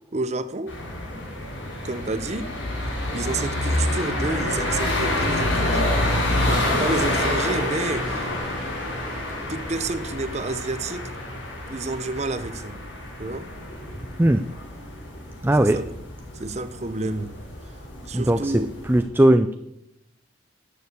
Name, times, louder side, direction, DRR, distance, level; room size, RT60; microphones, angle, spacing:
voice 1, 0.1-0.8 1.8-2.5 3.1-5.9 6.5-8.3 9.5-11.1 11.7-12.8 13.2-13.5 15.6-15.9 16.3-17.3 18.1-18.7, right 3 dB, 35° right, 0.7 m, -29 dB
sound 1, 0.7-19.0, left 1 dB, 75° left, 5.8 m, -28 dB
voice 2, 15.4-15.8 18.1-18.6 18.9-19.5, right 1 dB, 10° right, 0.4 m, -18 dB
12.0 x 6.7 x 8.1 m
head